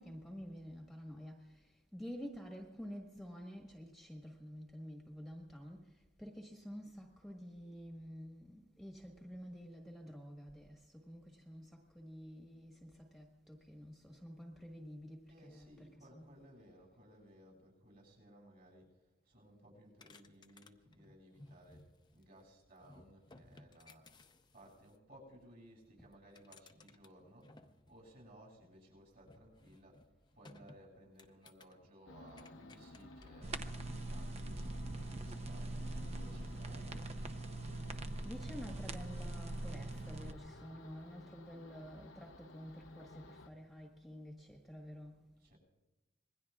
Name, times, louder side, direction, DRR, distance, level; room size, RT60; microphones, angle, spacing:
voice 1, 0.0-16.3 26.0-26.1 38.0-45.2, equal, ahead, 1.4 m, -50 dB
voice 2, 15.3-18.9 19.2-21.8 22.1-24.1 24.5-37.6 45.0-45.6, equal, 50° right, 7.8 m, -60 dB
sound 1, 20.0-22.4 22.8-25.0 26.1-28.3 29.2-30.8 31.2-31.8 32.3-33.3, left 2 dB, 25° left, 0.8 m, -60 dB
sound 2, 32.1-43.5, left 2 dB, 80° left, 0.8 m, -55 dB
sound 3, 33.4-40.3, right 2 dB, 35° right, 0.7 m, -42 dB
26.5 x 21.5 x 2.4 m
head